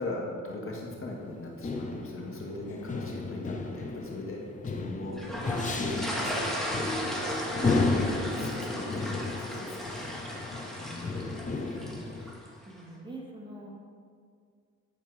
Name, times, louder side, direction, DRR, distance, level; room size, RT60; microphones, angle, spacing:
voice 1, 0.0-5.2 5.4-6.6 7.6-10.1 10.8-11.3, left 2 dB, 45° left, -1 dB, 1.8 m, -40 dB
sound 1, 0.8-12.3, left 3 dB, 25° left, 0.7 m, -34 dB
sound 2, 5.2-12.5, equal, ahead, 1.5 m, -35 dB
voice 2, 7.2-7.6 11.0-12.1 12.6-13.7, right 1 dB, 15° right, -3 dB, 2.0 m, -46 dB
11.0 x 4.4 x 4.8 m, 2.2 s
cardioid pair, 90°, 30 cm